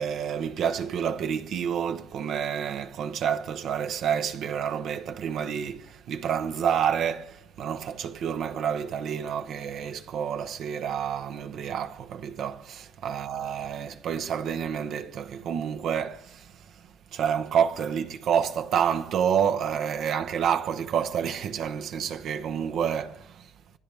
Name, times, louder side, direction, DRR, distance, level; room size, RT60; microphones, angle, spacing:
voice 1, 0.0-16.5 17.1-23.5, right 8 dB, 65° right, 0.8 m, -29 dB
25.5 x 15.0 x 3.4 m
cardioid pair, 95°, 0 cm